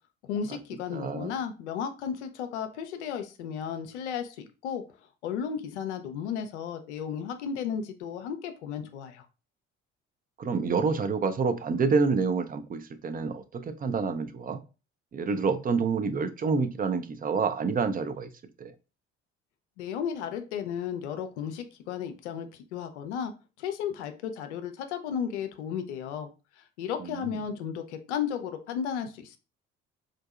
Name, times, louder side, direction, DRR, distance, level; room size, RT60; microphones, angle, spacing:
voice 1, 0.2-4.8 5.2-9.2 19.8-23.3 23.6-26.3 26.8-29.4, left 8 dB, 80° left, 7 dB, 0.5 m, -34 dB
voice 2, 0.9-1.3 10.4-14.6 15.1-18.3 18.6-18.7 27.0-27.3, right 5 dB, 25° right, 10 dB, 0.5 m, -28 dB
3.8 x 2.7 x 2.3 m, 0.31 s
hypercardioid pair, 50°, 34 cm